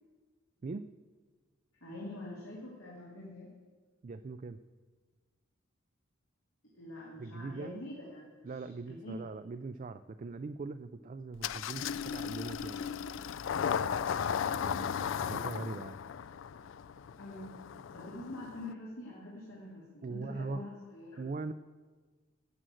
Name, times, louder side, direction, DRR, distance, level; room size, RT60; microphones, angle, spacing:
voice 1, 1.8-3.5 6.7-9.2 15.2-15.3 17.2-17.6 17.9-21.2, left 1 dB, 85° left, -5 dB, 2.6 m, -45 dB
voice 2, 4.0-4.6 7.2-7.8 8.4-13.2 14.6-16.0 20.0-20.6 21.2-21.5, right 3 dB, 35° right, 10 dB, 0.3 m, -41 dB
Engine starting, 11.4-18.7, left 7 dB, 65° left, 0.3 m, -36 dB
12.5 x 7.8 x 7.6 m, 1.4 s
head